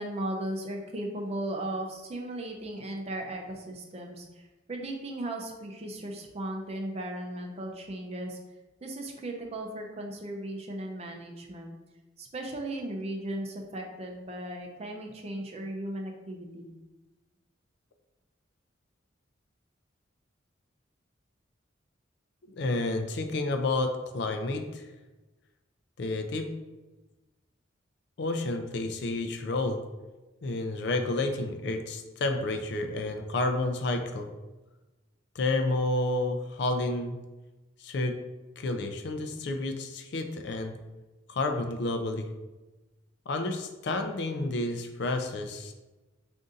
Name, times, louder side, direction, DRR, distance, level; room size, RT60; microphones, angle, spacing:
voice 1, 0.0-8.4 8.8-11.7 12.2-16.8, right 1 dB, 35° right, 1 dB, 0.5 m, -36 dB
voice 2, 22.5-24.8 26.0-26.5 28.2-29.8 30.4-34.3 35.4-37.2 37.8-38.1 38.6-40.8 41.3-42.3 43.3-45.7, left 2 dB, 60° left, 5 dB, 0.4 m, -30 dB
3.9 x 2.6 x 3.7 m, 1.1 s
head